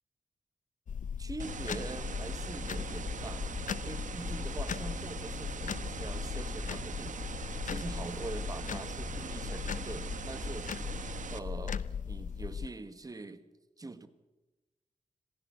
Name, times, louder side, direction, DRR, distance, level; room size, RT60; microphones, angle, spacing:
sound 1, 0.9-12.7, left 7 dB, 75° left, 0.8 m, -38 dB
voice 1, 1.2-3.5 3.8-10.7 11.3-13.4 13.8-14.1, right 3 dB, 30° right, 11 dB, 1.4 m, -44 dB
sound 2, 1.4-11.4, right 6 dB, 75° right, 1.3 m, -41 dB
26.5 x 16.0 x 8.3 m, 1.1 s
wide cardioid pair, 150°, 13 cm